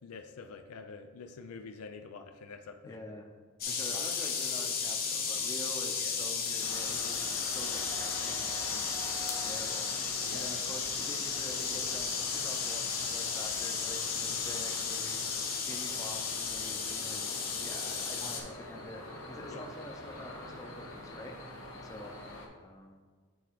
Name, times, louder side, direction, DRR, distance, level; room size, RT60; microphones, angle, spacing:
voice 1, 0.0-3.0 3.9-4.0 6.0-6.2 10.2-10.5 14.3-14.6 19.5-19.6, left 4 dB, 90° left, 6 dB, 0.4 m, -47 dB
voice 2, 2.9-3.3 3.7-9.0 9.4-17.3 17.6-22.2 22.6-23.0, left 1 dB, 15° left, 2 dB, 0.6 m, -47 dB
sound 1, 3.6-18.4, left 6 dB, 40° left, 0.9 m, -34 dB
sound 2, 6.6-22.5, left 1 dB, 65° left, 1.3 m, -45 dB
7.8 x 3.5 x 4.6 m, 1.5 s
head